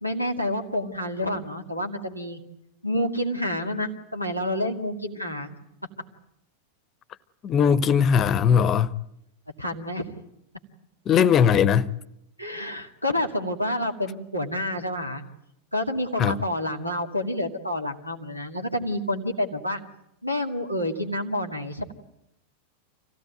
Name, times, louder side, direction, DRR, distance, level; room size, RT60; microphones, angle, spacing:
voice 1, 0.0-2.4 2.8-5.6 9.6-10.1 12.4-15.2 15.7-19.8 20.2-21.9, left 1 dB, 90° right, 2.2 m, -28 dB
voice 2, 7.4-8.9 11.1-11.9 16.2-16.4, left 7 dB, 30° left, 0.8 m, -19 dB
26.0 x 17.0 x 9.2 m
figure-of-eight pair, 90°, 0 cm